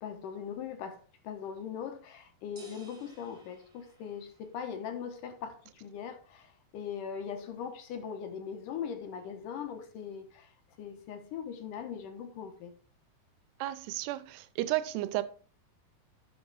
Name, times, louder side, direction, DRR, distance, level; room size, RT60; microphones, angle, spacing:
voice 1, 0.0-10.5 10.8-12.7, left 7 dB, 70° left, 2.2 m, -40 dB
sound 1, 2.6-4.6, right 4 dB, 25° right, 0.8 m, -55 dB
voice 2, 13.6-15.2, right 16 dB, 85° right, 2.8 m, -32 dB
7.9 x 6.5 x 4.7 m
omnidirectional pair, 4.7 m